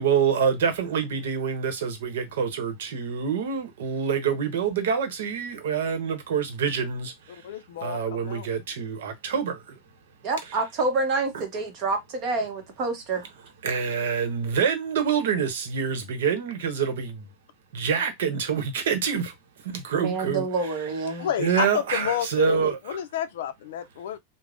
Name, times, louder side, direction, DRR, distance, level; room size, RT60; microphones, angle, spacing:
voice 1, 0.0-7.5 7.8-9.8 11.3-11.4 13.6-17.2 17.7-19.3 19.6-20.7 21.1-23.0, right 6 dB, 80° right, 0.8 m, -26 dB
voice 2, 7.4-8.5 21.2-24.2, left 10 dB, 70° left, 0.4 m, -30 dB
voice 3, 10.2-13.3 20.0-21.3, right 3 dB, 30° right, 0.8 m, -27 dB
3.4 x 2.0 x 2.5 m
supercardioid pair, 175°, 0 cm